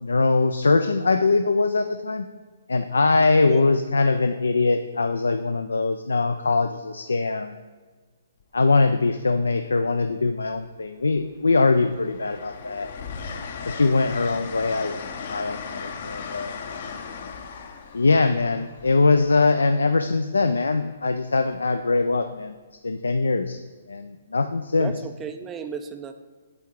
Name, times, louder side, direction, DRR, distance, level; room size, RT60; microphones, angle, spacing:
voice 1, 0.0-2.2 2.7-7.6 8.5-13.0 13.7-15.0 15.3-16.5 17.9-22.5 22.8-23.6 23.9-24.9, left 3 dB, 85° left, 8 dB, 0.3 m, -22 dB
voice 2, 3.4-3.7 24.8-26.2, right 7 dB, 20° right, 7 dB, 0.3 m, -34 dB
Train, 8.4-8.7 10.0-10.7 11.1-19.9 21.5-21.7, left 5 dB, 55° left, 0.7 m, -37 dB
8.5 x 3.6 x 4.6 m, 1.4 s
hypercardioid pair, 135°, 0 cm